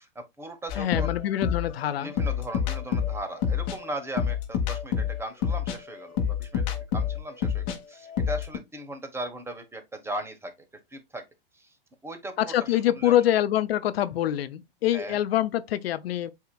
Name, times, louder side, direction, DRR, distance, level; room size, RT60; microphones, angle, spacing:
voice 1, 0.0-1.1 1.9-10.5 10.9-11.2 11.5-11.7 12.0-13.1 14.9-15.2, right 1 dB, 10° right, 1.1 m, -38 dB
sound 1, 0.7-7.8 8.1-8.6, left 8 dB, 45° left, 1.3 m, -28 dB
voice 2, 0.8-2.1 12.4-16.3, left 12 dB, 75° left, 0.5 m, -25 dB
8.1 x 2.9 x 2.3 m
hypercardioid pair, 110°, 31 cm